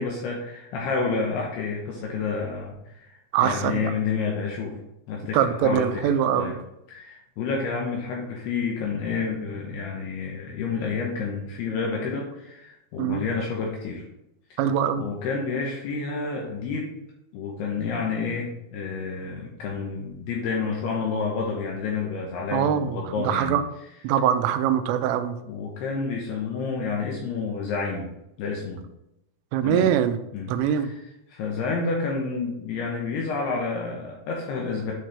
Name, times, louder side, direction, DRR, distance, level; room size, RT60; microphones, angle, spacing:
voice 1, 0.0-4.8 5.1-6.1 6.4-6.6 6.9-14.0 14.5-14.6 15.0-16.9 17.3-23.6 25.4-28.1 28.4-28.8 29.6-30.0 30.3-31.0 31.3-34.9, left 4 dB, 80° left, -1 dB, 2.5 m, -29 dB
voice 2, 3.3-3.9 5.3-6.5 13.0-13.2 14.6-15.0 22.5-23.6 24.0-25.4 29.5-30.2 30.5-30.9, right 9 dB, 90° right, 9 dB, 3.2 m, -23 dB
9.9 x 4.3 x 3.2 m, 0.85 s
omnidirectional pair, 5.6 m